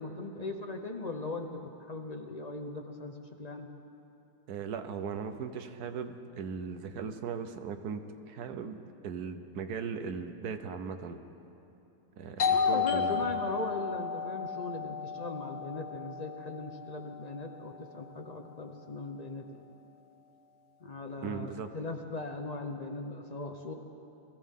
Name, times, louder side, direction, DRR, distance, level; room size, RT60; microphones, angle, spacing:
voice 1, 0.0-1.5 1.8-3.7 12.4-19.6 20.8-23.7, left 3 dB, 50° left, 4 dB, 0.5 m, -39 dB
voice 2, 4.5-8.0 8.3-8.8 9.0-11.2 12.2-13.3 21.2-21.7, right 6 dB, 75° right, 8 dB, 1.3 m, -38 dB
Doorbell, 12.4-17.8, left 6 dB, 80° left, 1.7 m, -33 dB
22.0 x 14.5 x 3.7 m, 2.9 s
omnidirectional pair, 1.7 m